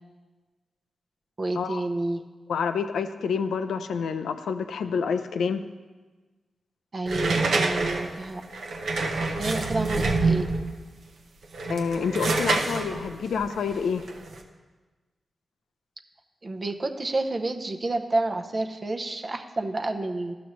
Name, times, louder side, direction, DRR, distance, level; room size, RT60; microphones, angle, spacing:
voice 1, 1.4-2.2 6.9-8.4 9.4-10.5 16.4-20.3, right 2 dB, 45° right, 6 dB, 0.7 m, -29 dB
voice 2, 2.5-5.6 11.7-14.0, left 6 dB, 85° left, 9 dB, 0.4 m, -28 dB
sound 1, 7.1-10.7 11.4-14.4, right 3 dB, 80° right, 0.7 m, -27 dB
12.0 x 6.1 x 3.1 m, 1.3 s
supercardioid pair, 45°, 0 cm